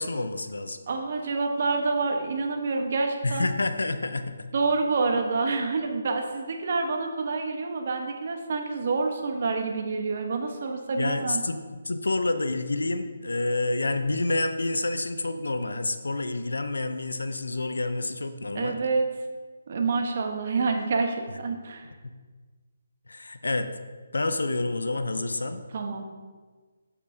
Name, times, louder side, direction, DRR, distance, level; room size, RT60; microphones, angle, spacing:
voice 1, 0.0-0.8 3.2-4.5 11.0-18.8 22.0-22.1 23.1-23.7 24.1-25.6, left 2 dB, 85° left, 9 dB, 0.6 m, -28 dB
voice 2, 0.9-3.5 4.5-11.4 18.5-19.1 19.7-21.9 25.7-26.0, right 4 dB, 50° right, 3 dB, 1.1 m, -27 dB
8.4 x 7.3 x 2.7 m, 1.4 s
hypercardioid pair, 155°, 0 cm